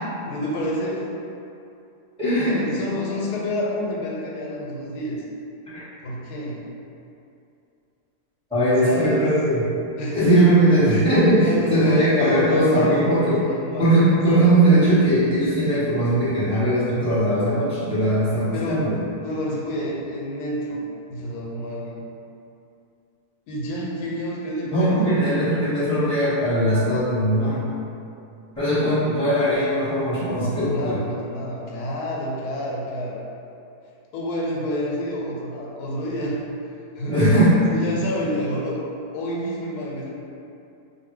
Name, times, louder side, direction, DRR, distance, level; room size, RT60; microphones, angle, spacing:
voice 1, 0.2-1.0 2.4-5.2 6.0-6.6 8.8-9.3 10.0-10.5 11.5-14.2 18.5-18.9 19.2-20.8 21.1-22.0 23.5-25.2 30.3-33.2 34.1-37.2 37.7-38.8 39.1-40.1, left 1 dB, 85° left, -3 dB, 1.1 m, -29 dB
voice 2, 2.2-2.6 5.7-5.8 8.5-9.6 10.1-13.4 13.8-19.0 24.6-27.7 28.6-30.9 37.0-37.6, right 1 dB, 5° left, -14 dB, 1.2 m, -19 dB
2.6 x 2.5 x 3.2 m, 2.6 s
omnidirectional pair, 1.6 m